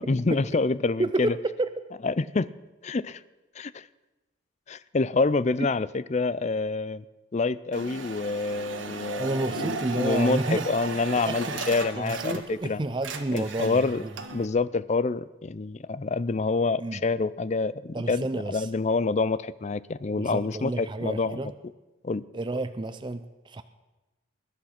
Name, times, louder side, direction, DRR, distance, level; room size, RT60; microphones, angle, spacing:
voice 1, 0.1-1.4 2.0-2.5 2.8-3.2 3.6-3.9 4.7-7.0 7.3-12.8 13.3-14.0 14.3-21.4 22.0-22.2, left 3 dB, 35° left, 17 dB, 0.5 m, -27 dB
voice 2, 1.0-1.7 9.2-10.7 11.3-11.4 11.9-14.1 16.8-17.0 17.9-18.7 20.1-21.5 22.3-23.6, right 2 dB, 25° right, 10 dB, 0.5 m, -30 dB
sound 1, 7.7-12.7 12.9-14.5, right 4 dB, 75° right, 1.5 m, -36 dB
20.5 x 11.0 x 5.8 m, 1.1 s
head